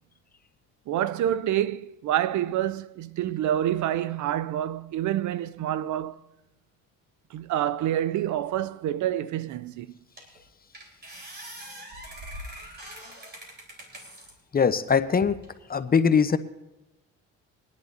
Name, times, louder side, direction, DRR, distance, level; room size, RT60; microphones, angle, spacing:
voice 1, 0.9-6.2 7.3-10.0, right 11 dB, 65° right, 0.5 m, -27 dB
sound 1, 9.5-9.6 10.2-10.4 10.7-14.3 14.9-15.5, equal, 30° right, 4.0 m, -43 dB
voice 2, 14.5-15.4 15.7-16.4, left 6 dB, 30° left, 0.8 m, -21 dB
23.5 x 10.5 x 2.7 m
cardioid pair, 85°, 32 cm